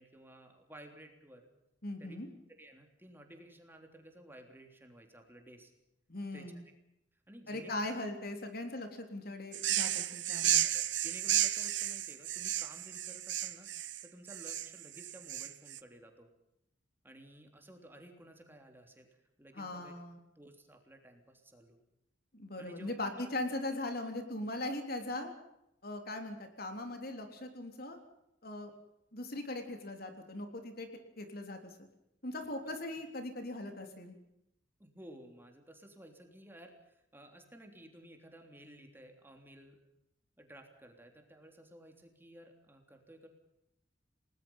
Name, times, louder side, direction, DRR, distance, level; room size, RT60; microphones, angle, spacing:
voice 1, 0.0-1.5 2.0-2.2 2.6-5.7 6.3-6.5 7.3-7.8 10.4-13.7 14.0-16.3 17.0-19.1 19.4-19.9 20.3-21.8 22.6-23.2 34.8-39.8 40.4-43.3, right 1 dB, 10° right, 4 dB, 3.3 m, -54 dB
voice 2, 1.8-2.3 6.1-6.6 7.5-10.7 19.5-20.2 22.3-25.3 25.8-28.0 28.4-28.7 29.1-30.9 31.2-31.6 32.2-34.1, left 2 dB, 55° left, 5 dB, 3.6 m, -40 dB
sound 1, 9.5-15.8, right 13 dB, 75° right, 1.2 m, -33 dB
30.0 x 19.5 x 5.6 m, 0.84 s
head